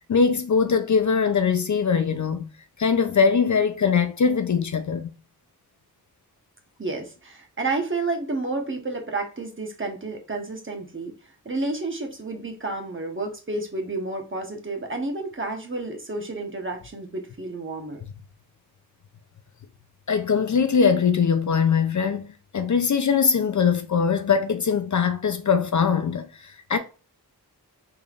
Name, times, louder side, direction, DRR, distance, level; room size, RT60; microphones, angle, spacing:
voice 1, 0.1-2.5 2.8-5.1 20.1-26.8, left 6 dB, 50° left, 0.5 m, -22 dB
voice 2, 6.8-11.1 11.4-18.0, right 3 dB, 30° right, 1.1 m, -30 dB
3.9 x 3.3 x 2.4 m
cardioid pair, 55°, 39 cm